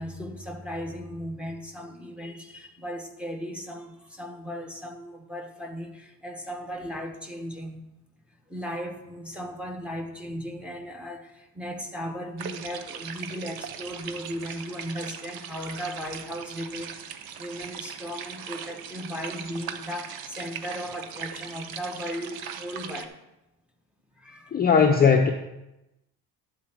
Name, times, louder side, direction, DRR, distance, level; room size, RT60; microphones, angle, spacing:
voice 1, 0.0-7.8 8.5-23.2 24.2-24.6, equal, 5° right, 2 dB, 1.0 m, -36 dB
sound 1, 12.4-23.0, right 8 dB, 70° right, 0.9 m, -39 dB
voice 2, 24.5-25.3, left 6 dB, 25° left, 2 dB, 0.6 m, -18 dB
11.5 x 4.5 x 7.4 m, 0.94 s
cardioid pair, 170°, 38 cm